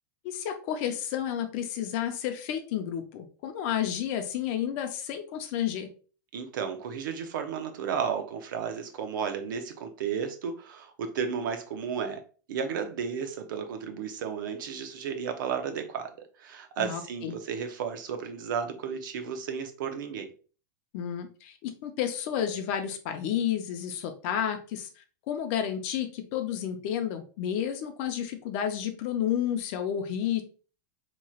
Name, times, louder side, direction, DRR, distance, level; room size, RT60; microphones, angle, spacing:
voice 1, 0.2-5.9 16.8-17.4 20.9-24.9 25.3-30.4, left 9 dB, 40° left, 7 dB, 0.6 m, -31 dB
voice 2, 6.3-12.2 12.5-20.3, right 7 dB, 70° right, 7 dB, 0.7 m, -33 dB
4.3 x 3.0 x 2.4 m, 0.37 s
supercardioid pair, 165°, 11 cm